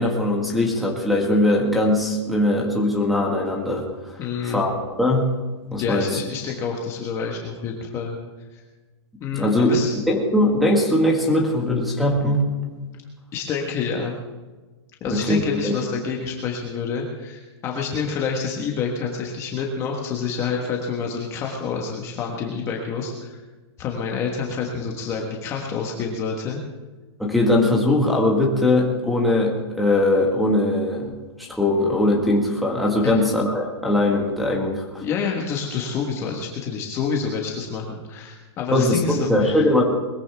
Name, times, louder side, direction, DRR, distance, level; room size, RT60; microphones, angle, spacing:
voice 1, 0.0-3.8 4.4-5.3 5.7-6.2 9.3-9.8 10.1-12.5 15.1-15.7 27.2-31.1 31.4-35.0 38.7-39.8, left 1 dB, ahead, -3 dB, 1.7 m, -20 dB
voice 2, 4.2-4.6 5.8-8.2 8.5-8.6 9.2-9.9 13.3-14.2 15.0-23.4 23.8-26.6 33.0-33.2 35.0-39.6, left 5 dB, 20° left, 0 dB, 1.4 m, -28 dB
21.0 x 15.0 x 3.5 m, 1.2 s
hypercardioid pair, 170°, 15 cm